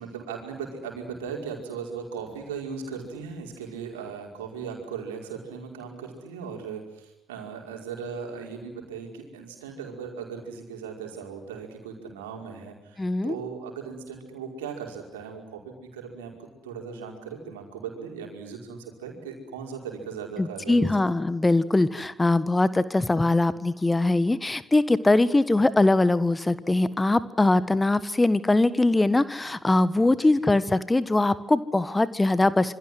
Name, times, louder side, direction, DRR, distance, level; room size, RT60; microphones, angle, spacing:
voice 1, 0.0-20.9 30.3-30.4, right 6 dB, 75° right, 2 dB, 5.3 m, -38 dB
voice 2, 13.0-13.3 20.4-32.7, left 2 dB, 15° left, 16 dB, 1.5 m, -22 dB
27.0 x 25.0 x 7.8 m, 0.93 s
figure-of-eight pair, 45°, 0 cm